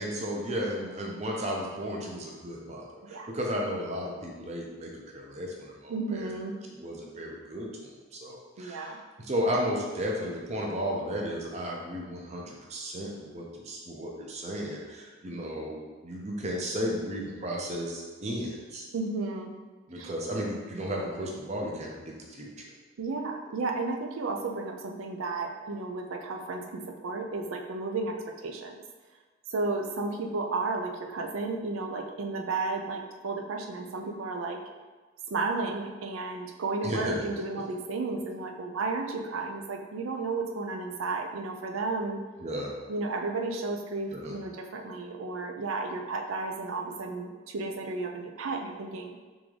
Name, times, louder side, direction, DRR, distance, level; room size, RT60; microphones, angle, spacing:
voice 1, 0.0-6.3 6.8-18.8 19.9-22.5 36.8-37.2 42.4-42.7 44.1-44.3, equal, 35° right, -1 dB, 0.6 m, -34 dB
voice 2, 5.9-6.5 8.6-9.0 18.9-19.5 20.0-20.1 23.0-28.8 29.5-34.6 35.3-42.2 42.9-49.2, right 3 dB, 90° right, 3 dB, 0.5 m, -33 dB
3.8 x 3.6 x 3.3 m, 1.3 s
head